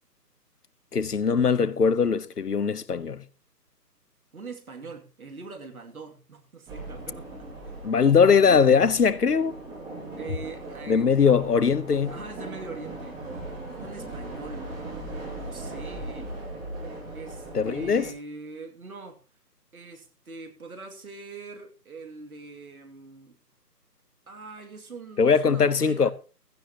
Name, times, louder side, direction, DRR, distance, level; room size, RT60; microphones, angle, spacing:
voice 1, 0.9-3.2 7.8-9.6 10.9-12.1 17.5-18.1 25.2-26.1, left 6 dB, 70° left, 1.0 m, -21 dB
voice 2, 4.3-7.8 10.2-11.6 12.1-13.3 13.7-14.7 15.3-16.3 17.1-19.2 19.7-23.4 24.3-26.1, right 4 dB, 60° right, 2.7 m, -42 dB
sound 1, 6.7-18.1, right 2 dB, 10° right, 2.5 m, -38 dB
16.0 x 13.5 x 2.9 m
figure-of-eight pair, 150°, 49 cm